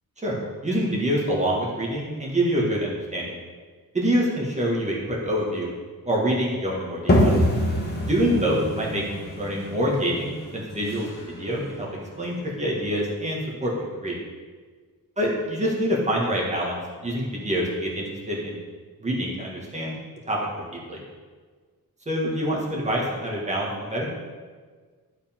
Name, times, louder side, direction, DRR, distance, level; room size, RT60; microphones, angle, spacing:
voice 1, 0.6-3.4 3.9-5.7 6.1-7.3 8.1-9.0 9.3-11.9 12.2-14.2 15.2-18.6 19.0-20.0 20.3-21.0 22.1-24.1, equal, 20° right, -3 dB, 1.8 m, -26 dB
sound 1, 7.1-12.6, equal, 25° left, 1.5 m, -25 dB
11.0 x 4.9 x 3.7 m, 1.5 s
wide cardioid pair, 125°, 36 cm